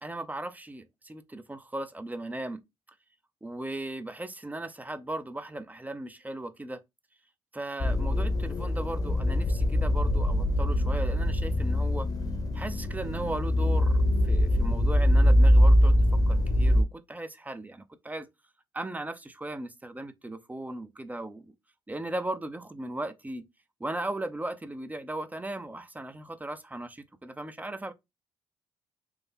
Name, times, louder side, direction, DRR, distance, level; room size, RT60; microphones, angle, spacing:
voice 1, 0.0-2.6 3.4-6.8 7.5-12.1 12.5-15.9 16.3-18.3 18.7-21.5 21.9-23.5 23.8-27.9, right 1 dB, 15° right, 0.5 m, -37 dB
sound 1, 7.8-16.8, left 1 dB, 30° left, 0.8 m, -23 dB
3.2 x 2.2 x 3.4 m
hypercardioid pair, 45°, 11 cm